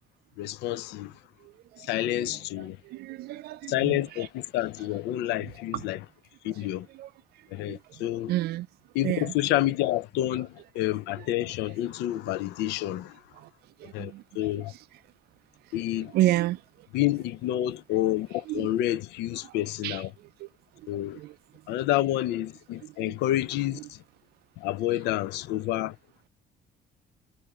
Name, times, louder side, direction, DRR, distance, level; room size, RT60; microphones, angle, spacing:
voice 1, 0.4-1.2 1.8-2.8 3.7-6.0 6.4-6.9 7.5-8.3 8.9-13.2 13.9-14.7 15.7-16.2 16.9-20.1 20.9-21.2 21.7-24.0 24.6-26.0, left 14 dB, 85° left, 0.5 m, -29 dB
voice 2, 1.4-2.4 2.8-4.3 5.4-5.8 6.9-7.1 7.3-8.0 8.3-8.7 9.0-9.3 11.2-11.3 13.3-13.5 13.8-14.2 14.6-14.8 16.1-16.9 18.5-18.7 19.4-19.6 19.8-20.5 20.8-21.4 22.8-23.1 23.7-23.8, right 16 dB, 70° right, 0.4 m, -32 dB
5.6 x 2.6 x 3.1 m
cardioid pair, 110°, 17 cm